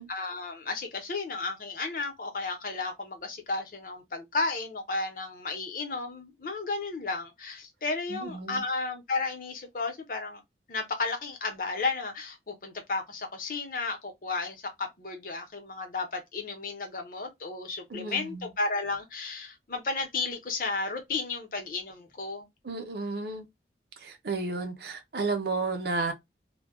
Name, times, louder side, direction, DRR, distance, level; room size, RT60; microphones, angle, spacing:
voice 1, 0.0-10.4 10.7-22.5, left 3 dB, 50° left, 0.7 m, -33 dB
voice 2, 8.1-8.6 17.9-18.5 22.6-23.5 24.0-26.1, right 3 dB, 65° right, 0.6 m, -32 dB
2.2 x 2.1 x 3.5 m
head